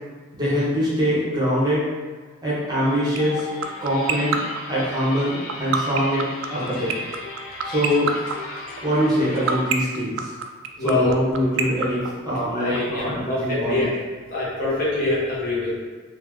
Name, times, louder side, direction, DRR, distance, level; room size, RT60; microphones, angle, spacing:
voice 1, 0.3-1.9 2.4-3.5 3.8-4.4 4.7-6.9 7.6-8.1 8.8-10.3 10.8-13.8, equal, 20° right, -8 dB, 0.8 m, -23 dB
sound 1, 2.8-9.6, left 2 dB, 75° left, 0.5 m, -37 dB
sound 2, 3.2-12.8, right 9 dB, 65° right, 0.3 m, -23 dB
voice 2, 10.8-11.2 12.5-13.8 14.3-15.7, left 2 dB, 40° left, -8 dB, 1.1 m, -24 dB
4.1 x 2.0 x 3.0 m, 1.4 s
head